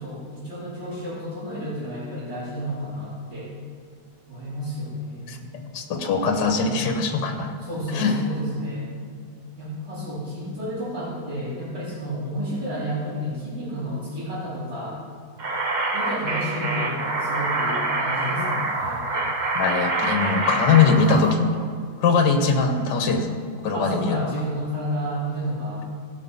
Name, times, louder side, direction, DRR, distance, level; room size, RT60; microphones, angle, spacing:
voice 1, 0.0-3.5 4.3-5.5 7.6-8.9 9.6-15.0 15.9-19.1 23.7-25.9, equal, 90° right, -13 dB, 4.0 m, -31 dB
voice 2, 5.3-7.5 7.9-8.2 19.5-21.6 22.0-23.4 23.6-24.3, left 5 dB, 70° left, 5 dB, 1.6 m, -21 dB
sound 1, 15.4-21.3, right 3 dB, 30° right, 0.9 m, -26 dB
16.5 x 6.0 x 5.5 m, 2.1 s
omnidirectional pair, 1.9 m